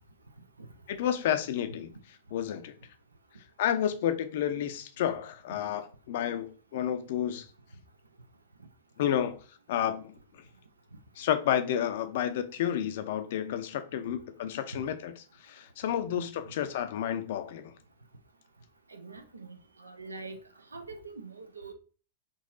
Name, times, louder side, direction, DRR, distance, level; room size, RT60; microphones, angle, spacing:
voice 1, 0.9-1.9 2.3-2.7 3.6-7.4 9.0-9.4 9.7-10.1 11.2-15.1 15.4-17.7, left 10 dB, 55° left, 0.4 m, -30 dB
voice 2, 18.9-20.4 20.7-21.7, right 3 dB, 80° right, 0.5 m, -44 dB
3.8 x 2.7 x 2.5 m
figure-of-eight pair, 100°, 0 cm